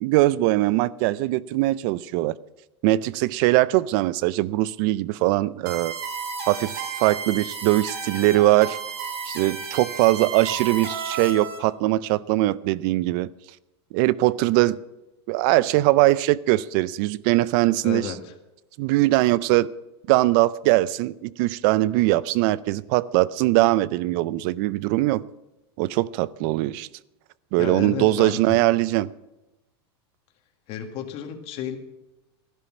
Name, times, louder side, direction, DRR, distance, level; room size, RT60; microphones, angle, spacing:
voice 1, 0.0-2.4 2.8-5.9 6.4-8.8 9.3-13.3 13.9-14.8 15.3-18.1 18.8-19.7 20.1-25.2 25.8-26.9 27.5-29.1, right 17 dB, 50° right, 0.5 m, -21 dB
sound 1, 5.7-11.6, right 5 dB, 65° right, 4.6 m, -33 dB
voice 2, 17.8-18.3 27.6-28.6 30.7-31.8, left 9 dB, 40° left, 1.9 m, -32 dB
14.0 x 11.5 x 6.2 m
supercardioid pair, 150°, 14 cm